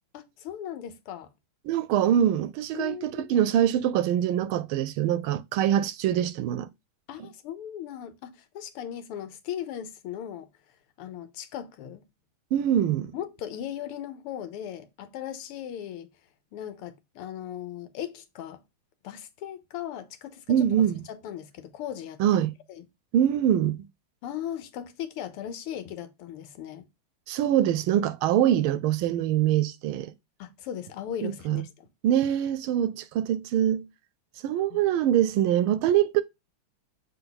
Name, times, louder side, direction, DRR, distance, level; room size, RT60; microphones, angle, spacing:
voice 1, 0.1-1.3 2.7-3.3 7.1-10.5 11.0-12.0 13.1-16.1 16.5-18.6 19.0-22.2 22.7-22.8 24.2-26.8 30.4-31.9 34.7-34.8, left 10 dB, 85° left, 1.8 m, -38 dB
voice 2, 1.7-6.7 12.5-13.1 20.5-21.0 22.2-22.5 23.1-23.8 27.3-30.1 31.2-31.6 32.0-33.9 34.4-36.2, right 10 dB, 75° right, 1.4 m, -24 dB
6.9 x 3.5 x 3.9 m
omnidirectional pair, 2.4 m